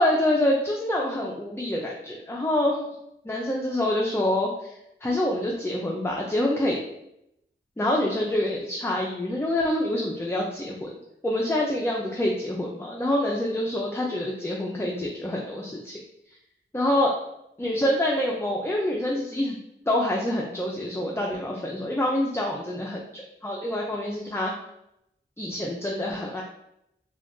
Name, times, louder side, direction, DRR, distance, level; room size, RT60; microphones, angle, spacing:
voice 1, 0.0-2.8 3.2-4.8 5.0-6.8 7.8-10.9 11.2-16.0 16.7-17.2 17.6-19.6 19.9-24.5 25.4-26.4, left 1 dB, 10° left, -2 dB, 0.4 m, -26 dB
2.5 x 2.3 x 3.6 m, 0.82 s
wide cardioid pair, 65°, 21 cm